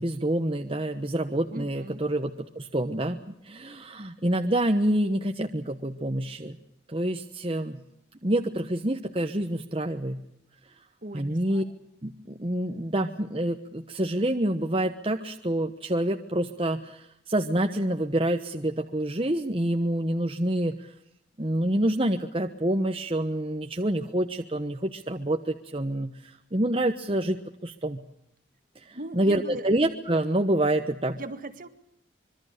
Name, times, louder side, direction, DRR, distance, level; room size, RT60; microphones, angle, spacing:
voice 1, 0.0-6.6 6.9-7.8 8.2-10.2 11.1-11.6 12.0-20.7 21.4-28.0 28.9-31.2, right 1 dB, 30° right, 5 dB, 1.2 m, -27 dB
voice 2, 1.5-2.0 11.0-11.7 28.9-29.8 31.2-31.7, right 1 dB, 50° right, 10 dB, 1.9 m, -39 dB
25.5 x 23.5 x 6.6 m, 0.76 s
head